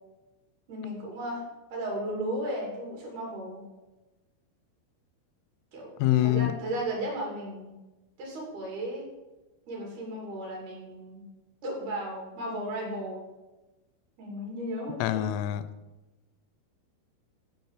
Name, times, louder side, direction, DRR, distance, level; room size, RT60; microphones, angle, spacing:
voice 1, 0.7-3.6 5.7-7.7 8.2-9.1 9.7-11.2 11.6-13.2 14.2-15.3, right 1 dB, 55° right, 4.2 m, -35 dB
voice 2, 6.0-6.6 15.0-15.7, left 14 dB, 85° left, 3.2 m, -25 dB
12.5 x 5.1 x 7.3 m
omnidirectional pair, 6.0 m